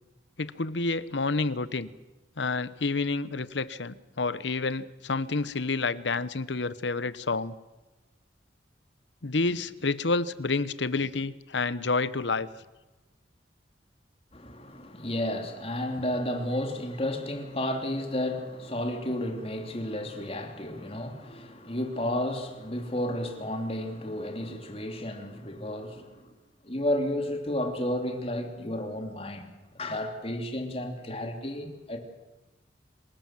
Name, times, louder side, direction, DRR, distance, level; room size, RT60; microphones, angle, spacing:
voice 1, 0.4-1.9 2.4-7.5 9.2-12.5, left 3 dB, 80° left, 1.0 m, -29 dB
voice 2, 14.3-26.3 26.6-32.0, left 1 dB, 35° left, 3.2 m, -32 dB
27.0 x 18.5 x 7.7 m
head